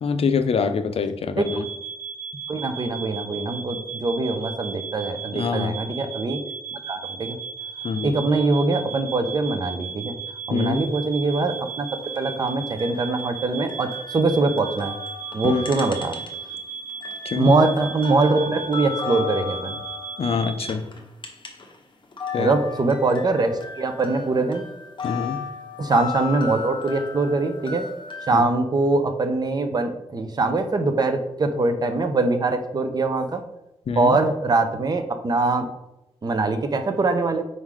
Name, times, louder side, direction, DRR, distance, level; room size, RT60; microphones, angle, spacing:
voice 1, 0.0-1.7 5.3-5.8 7.8-8.2 10.5-10.8 15.4-15.6 17.3-17.5 20.2-20.8 22.3-22.5 25.0-25.5 28.3-28.5 33.9-34.2, left 5 dB, 60° left, 10 dB, 0.5 m, -25 dB
sound 1, 1.4-20.7, right 6 dB, 75° right, 1.4 m, -36 dB
voice 2, 2.5-6.4 6.7-7.4 8.0-10.2 10.5-11.9 12.2-14.9 15.3-16.2 17.4-19.8 22.4-24.6 25.8-27.8 28.3-33.4 34.0-35.7 36.2-37.4, right 3 dB, 35° right, 7 dB, 0.7 m, -23 dB
sound 2, 12.0-16.6 16.9-21.8 22.0-28.4, left 6 dB, 45° left, 1.0 m, -35 dB
5.4 x 3.7 x 4.8 m, 0.92 s
wide cardioid pair, 135°, 11 cm